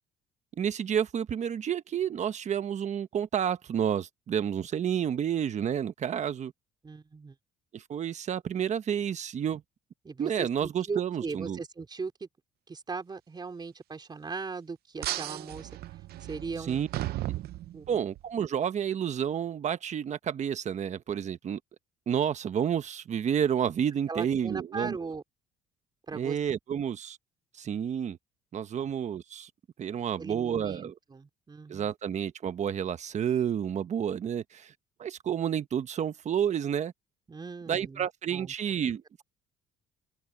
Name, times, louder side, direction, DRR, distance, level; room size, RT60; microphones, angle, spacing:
voice 1, 0.6-6.5 7.7-9.6 10.2-11.6 16.7-16.9 17.3-17.4 17.9-21.6 22.1-25.0 26.1-27.2 27.6-28.2 28.5-29.5 29.8-30.9 31.7-34.7 35.0-36.9 37.7-39.0, right 8 dB, 45° right, 1.2 m, -30 dB
voice 2, 6.8-7.4 10.0-12.3 12.7-15.7 16.3-16.8 17.7-18.0 24.1-25.2 26.1-26.4 28.8-28.9 30.2-31.9 37.3-38.5, right 4 dB, 25° right, 4.1 m, -39 dB
sound 1, 15.0-18.2, right 15 dB, 65° right, 0.7 m, -36 dB
cardioid pair, 110°, 17 cm